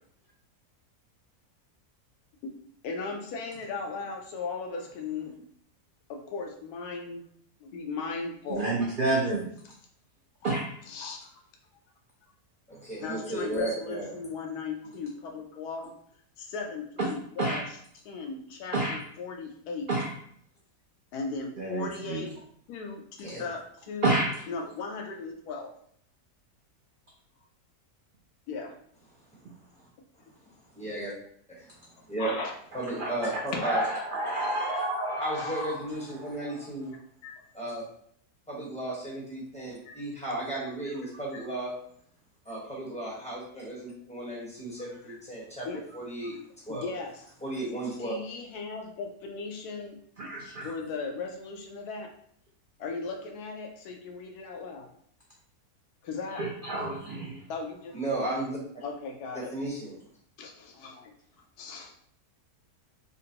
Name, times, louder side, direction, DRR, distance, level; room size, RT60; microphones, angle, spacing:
voice 1, 2.8-5.5 6.1-7.2 7.6-8.7 10.9-11.3 13.0-15.9 16.4-17.8 18.0-19.9 21.1-22.3 22.7-25.7 28.5-28.8 32.2-32.5 33.5-33.9 35.2-35.5 37.2-37.3 39.8-40.0 45.1-45.2 45.6-45.8 46.7-47.1 48.0-50.0 50.6-52.1 52.8-54.9 56.0-56.5 57.5-58.0 58.8-59.5 60.4-61.1 61.6-61.9, left 4 dB, 90° left, 2 dB, 1.2 m, -37 dB
voice 2, 8.5-9.5 10.4-10.6 17.4-17.6 18.7-19.0 19.9-20.1 21.6-22.2 24.0-24.4 32.9-33.1 33.6-35.7 50.2-50.7 56.4-57.4, right 2 dB, 70° right, -2 dB, 0.4 m, -29 dB
voice 3, 12.7-14.1 23.2-23.5 30.7-31.1 31.5-31.7 32.1-32.3 32.7-33.8 35.2-36.9 37.5-37.8 38.5-41.7 42.4-45.7 45.9-46.4 46.7-46.9 47.4-48.1 57.9-58.6 59.3-59.9, right 1 dB, 5° left, -7 dB, 1.1 m, -34 dB
3.9 x 2.2 x 2.8 m, 0.63 s
omnidirectional pair, 1.6 m